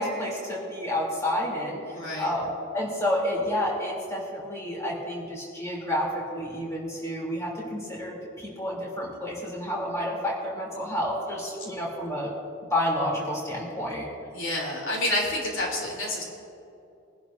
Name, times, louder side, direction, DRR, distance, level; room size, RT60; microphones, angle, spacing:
voice 1, 0.0-12.3 12.7-14.1, left 1 dB, 15° left, -4 dB, 3.0 m, -30 dB
voice 2, 1.9-2.3 14.3-16.2, left 1 dB, 70° left, -2 dB, 3.1 m, -28 dB
23.0 x 11.5 x 2.6 m, 2.6 s
head